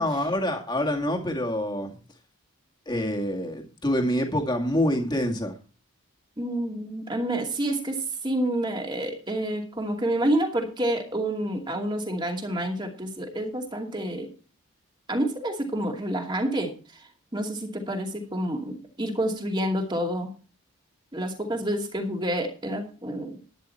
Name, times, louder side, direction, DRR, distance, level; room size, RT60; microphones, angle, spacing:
voice 1, 0.0-1.9 2.9-5.5, left 1 dB, 20° left, 2 dB, 2.1 m, -26 dB
voice 2, 6.4-14.3 15.1-20.3 21.1-23.4, right 1 dB, 20° right, 3 dB, 2.4 m, -28 dB
12.0 x 10.5 x 4.4 m, 0.36 s
head